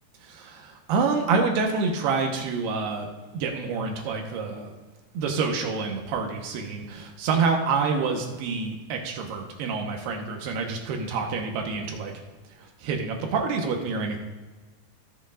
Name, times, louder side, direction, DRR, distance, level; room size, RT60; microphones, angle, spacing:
voice 1, 0.2-3.1 3.3-4.7 5.1-12.1 12.8-14.2, right 4 dB, 80° right, 2 dB, 3.2 m, -27 dB
18.0 x 8.0 x 2.5 m, 1.3 s
omnidirectional pair, 4.7 m